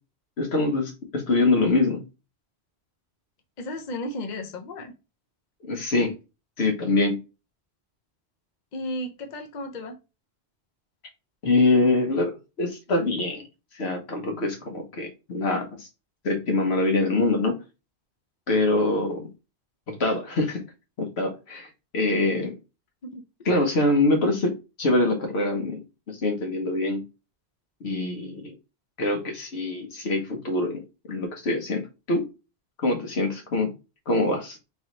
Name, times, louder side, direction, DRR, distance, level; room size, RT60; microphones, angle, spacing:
voice 1, 0.4-2.0 5.6-6.2 6.6-7.2 11.4-13.4 13.7-15.9 16.2-17.6 18.5-19.3 19.9-20.6 21.0-21.7 21.9-22.5 23.5-24.5 24.8-27.0 27.8-28.5 29.0-30.8 31.1-31.8 32.1-32.3 32.8-33.7 34.1-34.6, left 2 dB, 70° left, 4 dB, 1.3 m, -24 dB
voice 2, 3.6-4.9 8.7-10.0 23.0-23.5, left 1 dB, 45° left, 5 dB, 0.7 m, -34 dB
3.8 x 3.0 x 3.8 m, 0.28 s
omnidirectional pair, 1.1 m